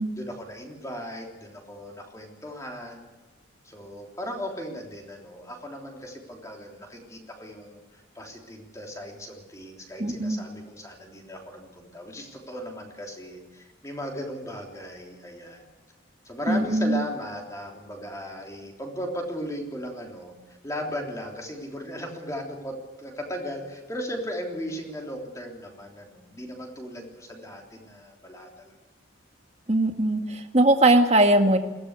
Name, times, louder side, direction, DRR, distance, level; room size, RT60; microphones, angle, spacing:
voice 1, 0.2-3.1 3.6-15.6 16.3-20.3 20.6-28.7, equal, 15° left, 1 dB, 3.4 m, -37 dB
voice 2, 10.0-10.4 16.5-17.0 29.7-31.6, right 1 dB, 35° right, 5 dB, 1.9 m, -20 dB
21.5 x 17.0 x 8.2 m, 1.2 s
head